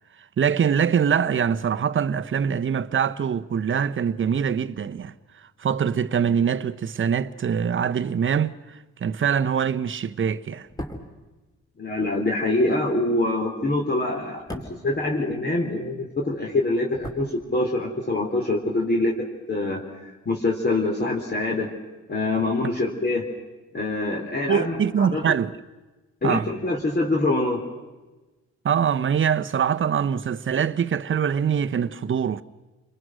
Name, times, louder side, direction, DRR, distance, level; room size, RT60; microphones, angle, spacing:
voice 1, 0.4-5.1 5.6-10.7 24.5-25.5 26.2-26.5 28.6-32.4, right 7 dB, 40° right, 1.0 m, -23 dB
sound 1, 10.6-15.9 16.2-18.0 18.3-18.4, equal, 10° left, 3.8 m, -41 dB
voice 2, 11.8-21.7 22.1-23.2 23.7-25.3 26.2-27.6, left 2 dB, 35° left, 4.0 m, -25 dB
30.0 x 22.5 x 6.3 m
cardioid pair, 90°, 30 cm